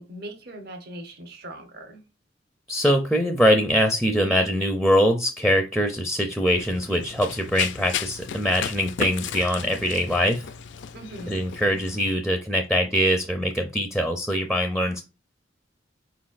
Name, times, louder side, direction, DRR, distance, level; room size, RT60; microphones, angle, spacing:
voice 1, 0.0-2.1 10.9-11.4, right 1 dB, 60° right, 0.9 m, -40 dB
voice 2, 2.7-10.5 11.3-15.0, equal, ahead, 0.4 m, -23 dB
Run, 6.6-12.1, left 8 dB, 75° left, 0.4 m, -35 dB
4.5 x 3.9 x 2.5 m
head